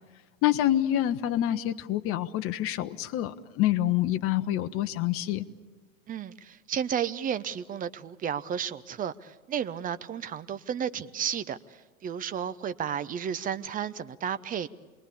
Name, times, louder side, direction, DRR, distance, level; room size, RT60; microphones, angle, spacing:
voice 1, 0.4-5.5, left 13 dB, 35° left, 9 dB, 1.0 m, -27 dB
voice 2, 6.1-11.6 12.0-14.7, right 8 dB, 20° right, 14 dB, 0.8 m, -32 dB
27.5 x 20.5 x 8.5 m, 1.4 s
hypercardioid pair, 100°, 41 cm